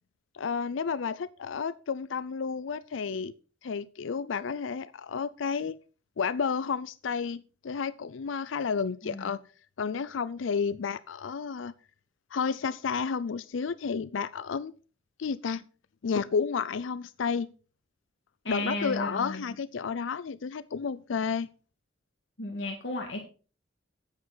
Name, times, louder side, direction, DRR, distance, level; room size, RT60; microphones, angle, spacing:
voice 1, 0.3-3.3 3.6-5.8 6.2-9.4 9.8-11.7 12.3-14.7 15.2-15.6 16.0-17.5 18.5-21.5, left 6 dB, 85° left, 16 dB, 0.5 m, -31 dB
voice 2, 9.0-9.4 18.4-19.5 22.4-23.2, left 2 dB, 70° left, 1 dB, 1.8 m, -34 dB
9.3 x 9.1 x 3.9 m, 0.37 s
head